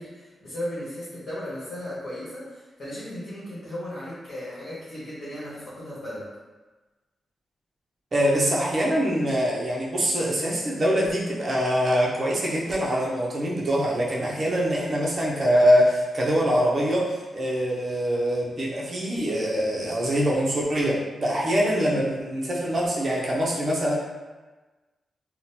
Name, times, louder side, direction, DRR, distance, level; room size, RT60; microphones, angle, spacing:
voice 1, 0.0-6.2, left 1 dB, 50° left, -10 dB, 1.1 m, -36 dB
voice 2, 8.1-23.9, equal, 35° right, -5 dB, 0.7 m, -24 dB
3.7 x 2.2 x 2.8 m, 1.2 s
wide cardioid pair, 150°, 0 cm